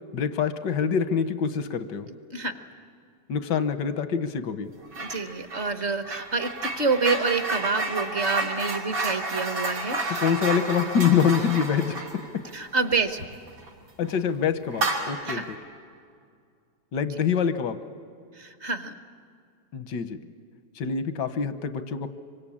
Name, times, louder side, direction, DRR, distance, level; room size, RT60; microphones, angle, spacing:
voice 1, 0.1-2.1 3.3-4.7 10.2-12.0 14.0-15.6 16.9-17.8 19.7-20.2 20.8-22.1, left 7 dB, 90° left, 10 dB, 1.7 m, -25 dB
sound 1, 4.9-5.2 5.5-13.7 14.0-14.2 14.7-15.5, right 2 dB, 85° right, 3.8 m, -31 dB
voice 2, 5.0-10.3 12.5-13.2 15.2-15.4 18.3-18.9, right 4 dB, 45° right, 9 dB, 1.3 m, -27 dB
26.0 x 24.0 x 8.7 m, 2.2 s
omnidirectional pair, 1.8 m